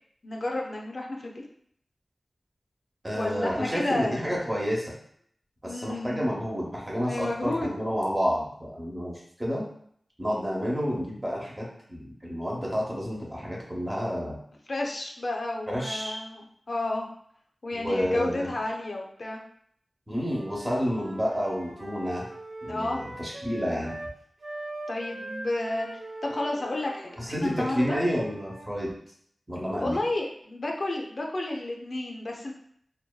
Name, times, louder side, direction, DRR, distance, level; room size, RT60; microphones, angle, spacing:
voice 1, 0.2-1.4 3.1-4.3 5.6-6.2 7.0-7.8 14.7-16.4 16.7-17.1 17.6-19.4 22.7-23.0 24.9-25.9 26.2-28.0 29.8-32.5, left 2 dB, 55° left, 0 dB, 0.4 m, -31 dB
voice 2, 3.0-5.0 5.6-9.6 10.2-14.4 15.7-16.2 17.7-18.5 20.1-22.3 22.6-24.0 27.2-28.9 29.5-30.0, equal, 20° right, -3 dB, 0.7 m, -30 dB
Wind instrument woodwind instrument, 20.2-24.1 24.4-28.7, right 1 dB, 40° right, 0.4 m, -42 dB
2.6 x 2.2 x 2.2 m, 0.65 s
wide cardioid pair, 75°, 0 cm